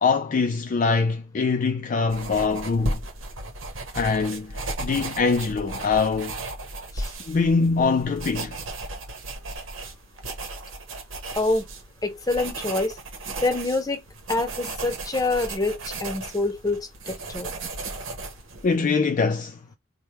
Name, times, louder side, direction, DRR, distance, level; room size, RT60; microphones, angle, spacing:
voice 1, 0.0-3.0 3.9-6.3 7.3-8.6 18.6-19.6, left 4 dB, 40° left, 0.3 m, -23 dB
sound 1, 2.1-18.8, right 2 dB, 85° right, 1.0 m, -35 dB
voice 2, 12.0-12.9 13.4-14.0 14.3-17.5, left 2 dB, 20° left, 0.8 m, -26 dB
3.3 x 2.2 x 4.3 m
head